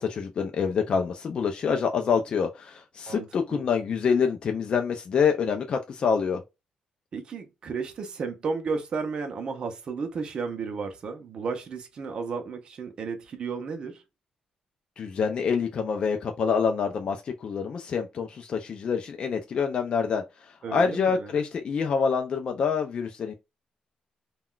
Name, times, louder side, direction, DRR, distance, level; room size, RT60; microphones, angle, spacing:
voice 1, 0.0-6.4 15.0-23.3, left 6 dB, 40° left, 0.3 m, -26 dB
voice 2, 7.1-14.0 20.6-21.3, right 5 dB, 40° right, 0.5 m, -33 dB
2.3 x 2.2 x 3.6 m
wide cardioid pair, 170°, 2 cm